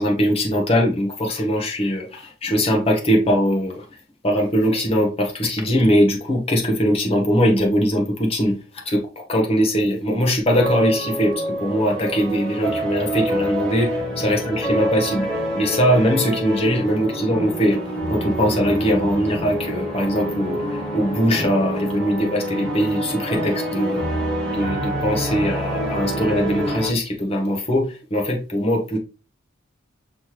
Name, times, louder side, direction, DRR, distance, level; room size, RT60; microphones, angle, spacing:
voice 1, 0.0-3.8 4.2-8.6 8.8-15.3 15.5-17.8 18.1-20.6 20.9-24.0 24.5-29.0, equal, 30° left, 1.0 m, -21 dB
sound 1, 10.5-26.9, right 1 dB, 5° left, 2.0 m, -26 dB
5.5 x 2.9 x 3.1 m
head